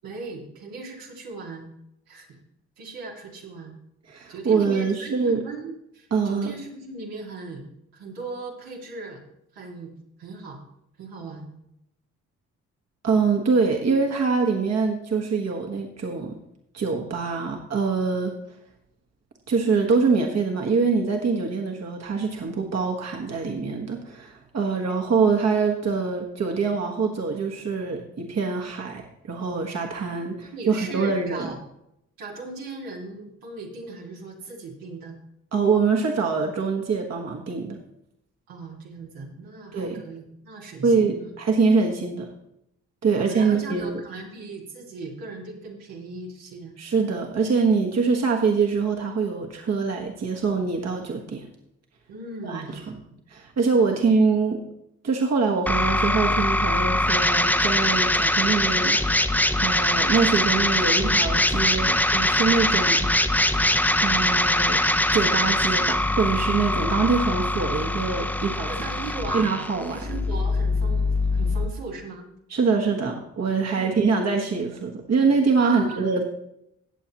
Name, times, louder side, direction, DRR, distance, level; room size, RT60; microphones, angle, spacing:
voice 1, 0.0-1.7 2.1-2.3 2.8-3.8 4.3-5.1 5.4-7.7 7.9-9.2 9.5-9.9 10.2-10.6 11.0-11.5 30.5-31.6 32.2-35.2 38.5-41.4 43.1-46.7 52.1-52.9 53.9-54.0 68.6-69.5 69.9-72.3 73.7-74.0 75.6-76.2, right 3 dB, 80° right, -2 dB, 2.3 m, -38 dB
voice 2, 4.1-5.4 6.1-6.5 13.0-16.3 16.7-18.3 19.5-31.5 35.5-37.8 39.7-40.0 40.8-42.3 43.0-44.0 46.8-51.5 52.4-53.0 53.3-54.6 55.0-59.0 59.6-63.1 64.0-64.8 65.1-68.7 69.3-70.1 72.5-76.2, right 4 dB, 50° right, 1 dB, 1.6 m, -24 dB
sound 1, 55.7-71.7, left 1 dB, 5° left, 0.9 m, -22 dB
17.0 x 7.1 x 3.0 m, 0.79 s
hypercardioid pair, 45°, 35 cm